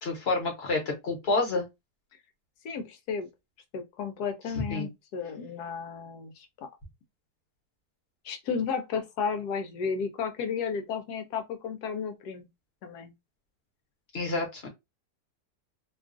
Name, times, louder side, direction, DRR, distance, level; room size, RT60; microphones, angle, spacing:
voice 1, 0.0-1.7 4.5-4.9 14.1-14.7, left 3 dB, 45° left, 1.0 m, -29 dB
voice 2, 2.6-3.3 3.7-6.5 8.2-12.5 12.8-13.1, left 6 dB, 70° left, 1.1 m, -33 dB
3.0 x 2.3 x 2.5 m
omnidirectional pair, 1.8 m